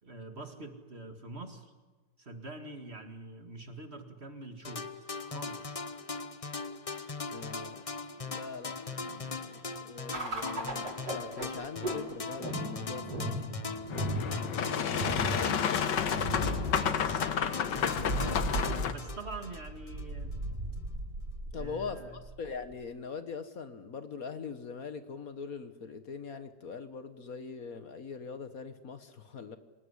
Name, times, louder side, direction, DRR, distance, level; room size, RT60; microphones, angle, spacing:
voice 1, 0.0-1.7 2.2-4.9 5.2-5.8 14.5-14.9 16.8-17.7 18.2-20.3 21.5-22.2, right 2 dB, 35° right, 6 dB, 2.5 m, -45 dB
sound 1, 4.6-20.1, left 4 dB, 30° left, 0.7 m, -40 dB
voice 2, 7.3-7.8 8.2-14.1 21.5-22.1 22.4-29.6, left 5 dB, 55° left, 10 dB, 1.7 m, -42 dB
sound 2, 10.1-22.7, right 1 dB, 80° right, 6.1 m, -37 dB
Boat Water vehicle, 13.9-18.9, left 8 dB, 85° left, 1.9 m, -31 dB
27.0 x 19.5 x 9.9 m, 1.3 s
omnidirectional pair, 1.8 m